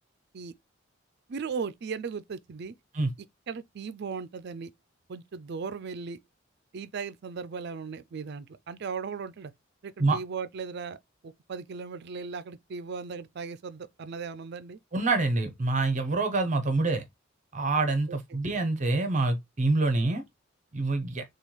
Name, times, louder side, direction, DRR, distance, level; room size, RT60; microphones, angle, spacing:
voice 1, 1.3-2.7 3.5-4.7 5.1-6.2 6.7-9.5 9.8-11.0 11.2-14.8 18.1-18.2, right 5 dB, 60° right, 0.4 m, -37 dB
voice 2, 14.9-17.0 17.5-20.2 20.7-21.2, right 3 dB, 40° right, 0.8 m, -26 dB
6.5 x 2.3 x 3.1 m
head